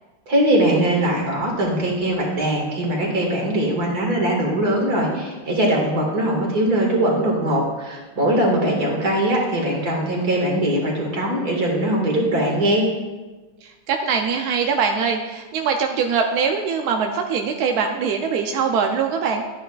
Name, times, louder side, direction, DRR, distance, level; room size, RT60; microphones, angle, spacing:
voice 1, 0.3-12.9, right 1 dB, 55° right, -1 dB, 2.3 m, -21 dB
voice 2, 13.6-19.4, right 6 dB, 70° right, 3 dB, 1.0 m, -22 dB
11.0 x 9.2 x 2.3 m, 1.2 s
omnidirectional pair, 2.0 m